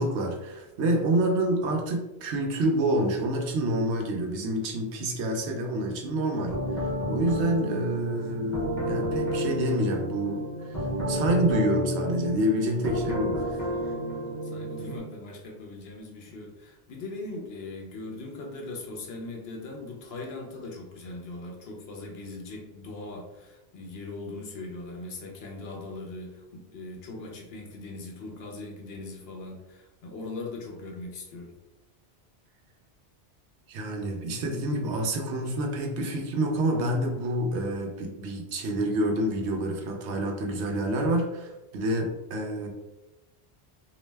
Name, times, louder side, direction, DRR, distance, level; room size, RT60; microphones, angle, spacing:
voice 1, 0.0-6.6 7.1-10.4 10.7-13.6 33.7-42.7, right 1 dB, 90° right, 2 dB, 0.9 m, -28 dB
sound 1, 6.5-15.0, equal, 20° left, 0.6 m, -31 dB
voice 2, 13.7-14.2 14.4-31.5, left 2 dB, 70° left, 0 dB, 0.8 m, -40 dB
2.6 x 2.1 x 3.2 m, 1.0 s
omnidirectional pair, 1.1 m